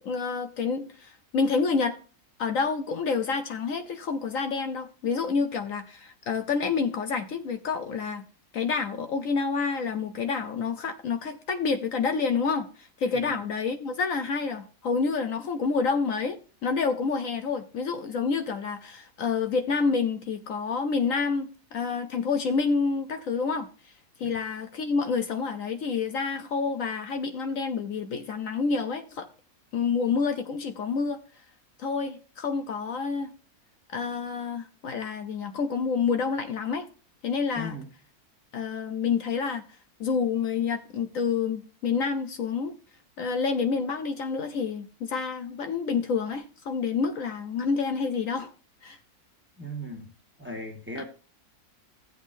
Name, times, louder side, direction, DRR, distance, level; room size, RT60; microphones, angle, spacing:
voice 1, 0.0-1.9 2.4-8.2 8.5-23.9 24.2-29.3 29.7-31.2 31.8-33.3 33.9-36.9 37.2-37.7 38.5-39.6 40.0-42.7 43.2-48.5 48.8-49.0 51.0-51.1, left 5 dB, 65° left, 1.1 m, -28 dB
voice 2, 37.5-37.9 49.6-50.1 50.4-51.0, equal, 10° right, 1.3 m, -37 dB
15.0 x 8.1 x 2.6 m
omnidirectional pair, 1.6 m